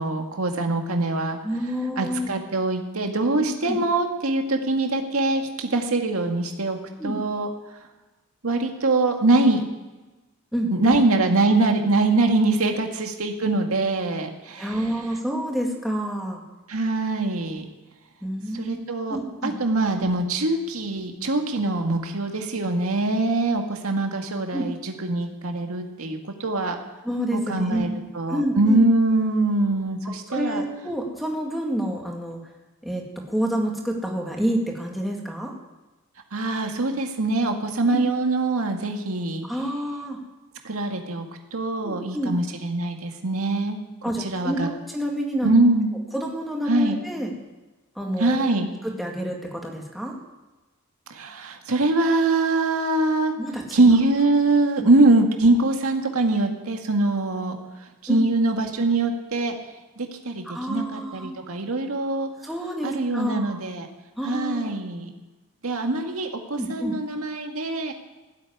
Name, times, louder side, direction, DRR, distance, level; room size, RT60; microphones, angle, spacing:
voice 1, 0.0-1.4 2.0-7.5 8.4-9.7 10.7-14.7 16.7-17.7 18.5-26.8 27.3-27.9 28.1-30.6 36.3-39.5 40.6-43.8 44.2-44.7 45.4-45.9 46.7-47.0 48.2-48.7 51.1-53.3 53.7-57.6 58.0-59.5 60.0-62.3 62.8-63.9 64.2-65.1 65.6-67.9, right 2 dB, 90° right, 3 dB, 1.9 m, -23 dB
voice 2, 1.4-2.3 3.4-3.8 7.0-7.2 10.5-10.9 14.6-16.4 18.2-18.8 19.1-19.5 24.5-24.6 27.0-28.0 28.3-28.8 30.3-32.4 32.8-35.5 37.9-38.0 39.5-40.2 41.8-42.3 44.0-45.5 46.1-47.3 48.0-48.5 48.8-50.2 53.4-53.8 58.1-58.2 60.5-61.3 62.4-63.5 64.2-64.8 66.5-67.0, equal, ahead, -1 dB, 2.1 m, -28 dB
15.5 x 8.3 x 9.7 m, 1.1 s
head